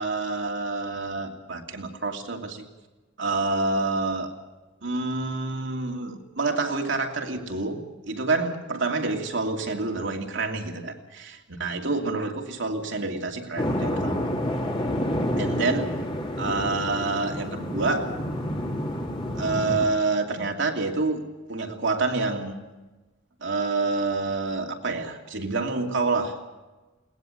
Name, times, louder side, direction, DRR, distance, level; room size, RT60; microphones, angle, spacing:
voice 1, 0.0-2.6 3.2-4.3 4.8-14.3 15.4-16.0 16.4-18.1 19.3-21.2 21.5-22.6 23.4-26.4, right 3 dB, 65° right, 2 dB, 2.8 m, -28 dB
sound 1, 13.6-19.9, left 1 dB, 25° left, 2.9 m, -29 dB
21.5 x 19.0 x 7.9 m, 1.2 s
head